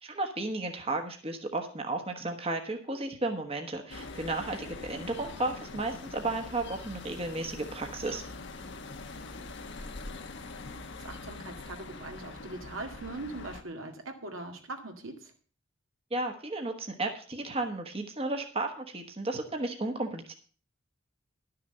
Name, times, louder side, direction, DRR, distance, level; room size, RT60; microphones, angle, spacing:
voice 1, 0.0-8.2 16.1-20.3, right 2 dB, 30° right, 4 dB, 1.2 m, -33 dB
sound 1, 3.9-13.6, left 3 dB, 60° left, 1.1 m, -43 dB
voice 2, 11.0-15.3, right 2 dB, 85° right, 3 dB, 2.2 m, -41 dB
12.0 x 6.7 x 6.7 m, 0.42 s
head